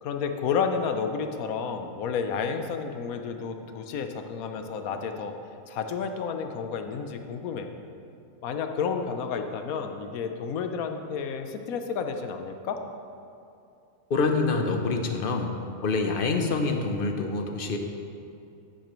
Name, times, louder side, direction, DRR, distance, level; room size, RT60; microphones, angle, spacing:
voice 1, 0.0-5.3 5.7-7.7 8.4-12.8, left 6 dB, 80° left, 6 dB, 1.2 m, -31 dB
voice 2, 14.1-15.5 15.8-17.8, left 3 dB, 45° left, 4 dB, 0.8 m, -26 dB
10.0 x 10.0 x 3.1 m, 2.6 s
omnidirectional pair, 1.5 m